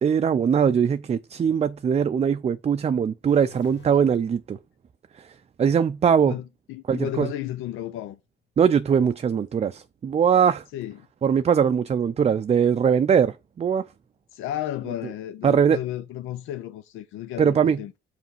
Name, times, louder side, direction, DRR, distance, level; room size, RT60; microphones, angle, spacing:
voice 1, 0.0-4.6 5.1-5.3 5.6-6.3 6.9-7.3 8.6-10.6 11.2-13.8 15.4-15.8 17.4-17.8, right 7 dB, 35° right, 0.4 m, -21 dB
sound 1, 3.2-4.1 10.5-10.6, left 9 dB, 70° left, 1.4 m, -49 dB
voice 2, 6.7-8.2 10.7-11.1 14.3-17.9, left 12 dB, 90° left, 0.5 m, -33 dB
5.6 x 5.0 x 4.5 m
cardioid pair, 90°, 20 cm